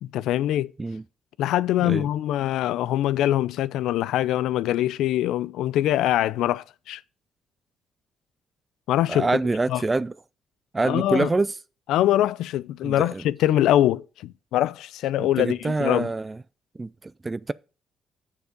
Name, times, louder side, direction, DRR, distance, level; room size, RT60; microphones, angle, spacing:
voice 1, 0.0-0.7 1.4-7.0 8.9-9.3 9.7-9.8 10.8-11.3 11.9-16.1, left 13 dB, 85° left, 0.4 m, -23 dB
voice 2, 9.1-10.1 10.7-11.5 12.8-13.2 15.2-16.4 16.8-17.5, right 3 dB, 20° right, 0.3 m, -26 dB
7.0 x 6.9 x 5.2 m
cardioid pair, 90°, 0 cm